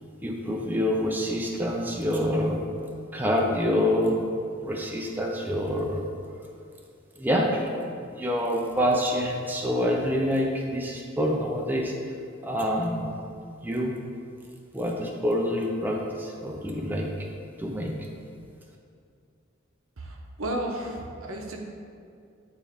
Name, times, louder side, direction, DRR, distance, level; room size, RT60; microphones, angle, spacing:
voice 1, 0.2-2.6 3.1-4.2 4.6-6.1 7.2-7.7 8.1-11.9 12.4-13.1 13.6-13.9 14.7-17.3 17.6-17.9, equal, 10° right, -1 dB, 0.5 m, -26 dB
voice 2, 20.0-21.6, right 1 dB, 85° right, 1 dB, 0.8 m, -33 dB
8.9 x 3.6 x 3.5 m, 2.4 s
head